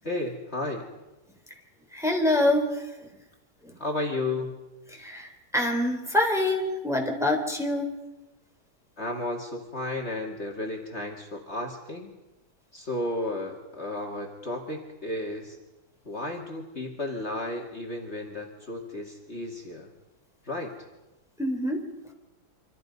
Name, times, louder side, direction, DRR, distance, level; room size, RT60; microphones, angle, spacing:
voice 1, 0.0-0.9 3.8-4.6 9.0-12.1 12.7-15.6 16.0-19.9 20.4-20.8, left 2 dB, 40° left, 0 dB, 2.7 m, -33 dB
voice 2, 1.9-2.9 3.6-3.7 4.9-7.9 21.4-21.8, left 1 dB, ahead, 1 dB, 3.7 m, -25 dB
28.0 x 25.5 x 5.4 m, 1.0 s
omnidirectional pair, 1.8 m